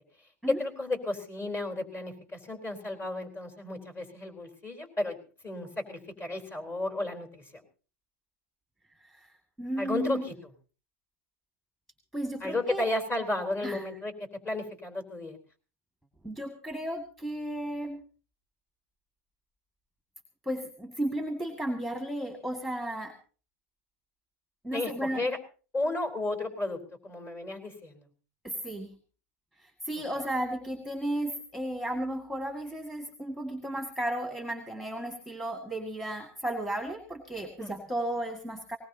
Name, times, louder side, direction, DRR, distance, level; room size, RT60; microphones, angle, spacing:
voice 1, 0.5-5.2 5.4-7.6 9.8-10.3 12.4-14.1 14.4-15.4 24.7-25.4 25.7-28.0 37.6-37.7, left 2 dB, 25° left, 3 dB, 4.0 m, -33 dB
voice 2, 9.6-10.2 12.1-12.8 13.6-13.8 16.2-18.0 20.4-23.1 24.6-25.3 28.4-28.9 29.6-38.8, right 1 dB, 5° left, 4 dB, 2.1 m, -34 dB
20.0 x 19.5 x 2.8 m, 0.38 s
supercardioid pair, 130°, 8 cm